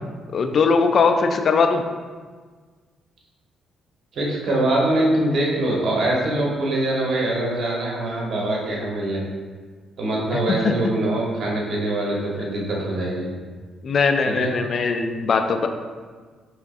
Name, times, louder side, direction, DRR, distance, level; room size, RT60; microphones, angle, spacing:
voice 1, 0.3-1.8 10.5-10.7 13.8-15.7, left 4 dB, 50° left, 7 dB, 0.3 m, -20 dB
voice 2, 4.1-9.2 10.0-13.3 14.2-14.5, right 1 dB, 60° right, -3 dB, 1.1 m, -23 dB
4.8 x 3.4 x 2.6 m, 1.5 s
cardioid pair, 90°, 0 cm